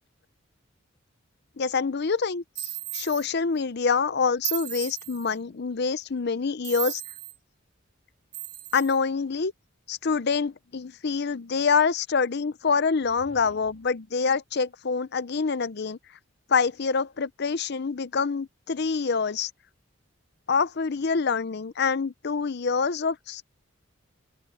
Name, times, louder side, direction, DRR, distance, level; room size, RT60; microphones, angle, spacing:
voice 1, 1.6-7.0 8.7-9.5 9.9-16.0 16.5-19.5 20.5-23.5, left 5 dB, 55° left, 0.6 m, -26 dB
sound 1, 2.5-3.3 4.4-5.3 6.6-7.3 8.3-9.0, right 14 dB, 40° right, 3.3 m, -35 dB
sound 2, 12.9-14.1, equal, 35° left, 3.2 m, -52 dB
open air
head